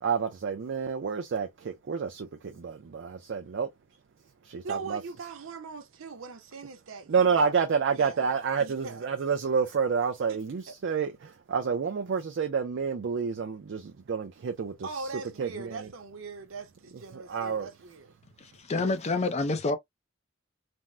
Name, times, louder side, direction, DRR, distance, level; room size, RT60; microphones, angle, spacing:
voice 1, 0.0-3.7 4.4-5.0 7.1-15.1 15.4-15.9 17.1-17.7, right 6 dB, 60° right, 0.4 m, -29 dB
voice 2, 4.6-7.6 7.9-8.3 8.6-9.0 10.3-10.4 10.7-10.8 14.8-18.1, right 4 dB, 85° right, 0.7 m, -41 dB
voice 3, 18.6-19.8, left 3 dB, 35° left, 0.5 m, -27 dB
3.5 x 2.0 x 2.5 m
head